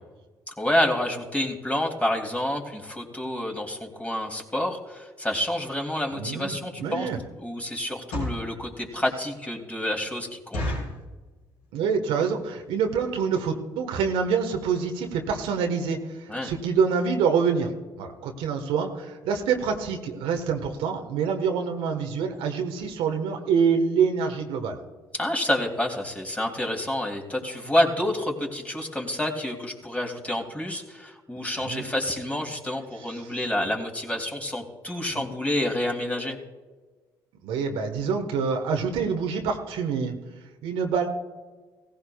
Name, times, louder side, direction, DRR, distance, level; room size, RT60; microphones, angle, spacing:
voice 1, 0.5-7.1 7.4-10.6 16.3-16.5 25.1-36.4, left 1 dB, 15° left, 1 dB, 2.7 m, -28 dB
voice 2, 6.1-7.2 11.7-17.7 18.0-24.8 31.6-31.9 35.1-35.2 37.4-40.2 40.6-41.1, right 6 dB, 75° right, 4 dB, 1.3 m, -26 dB
sound 1, 6.9-7.2 7.9-8.5 9.1-9.2 9.5-9.6 9.9-10.0 10.5-11.0 11.6-11.9 12.2-12.3 12.5-12.8 13.3-13.4 13.6-13.8 14.2-14.3 14.5-14.6, left 1 dB, 85° left, 4.1 m, -32 dB
17.0 x 15.5 x 2.3 m, 1.3 s
hypercardioid pair, 55°, 9 cm